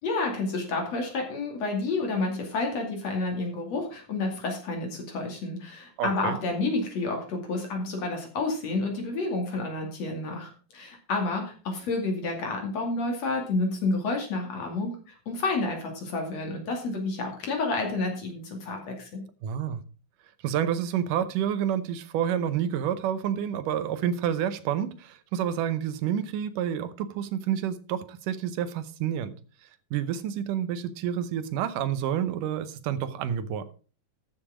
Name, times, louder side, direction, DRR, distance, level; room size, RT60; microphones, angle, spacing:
voice 1, 0.0-19.2, left 3 dB, 50° left, 3.4 m, -30 dB
voice 2, 6.0-6.4 19.4-19.8 20.4-29.3 29.6-33.7, right 9 dB, 75° right, 2.4 m, -29 dB
13.5 x 6.8 x 4.9 m
omnidirectional pair, 4.0 m